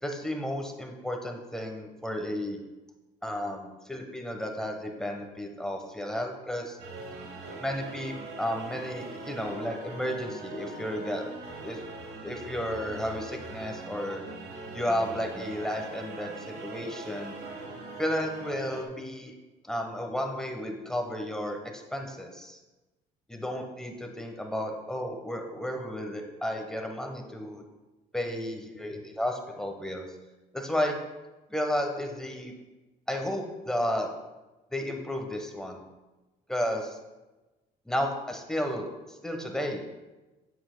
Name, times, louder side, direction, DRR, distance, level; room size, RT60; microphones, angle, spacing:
voice 1, 0.0-2.6 3.2-6.8 7.6-11.2 11.6-11.8 12.2-14.2 14.7-17.4 18.0-19.3 19.6-22.6 23.3-27.6 28.1-30.1 30.5-31.0 31.5-32.5 33.1-34.1 34.7-35.8 36.5-37.0 37.9-39.8, equal, 5° left, 3 dB, 1.1 m, -33 dB
sound 1, 6.8-18.8, right 3 dB, 70° right, 1.3 m, -41 dB
8.7 x 7.6 x 2.2 m, 1.1 s
cardioid pair, 110°, 17 cm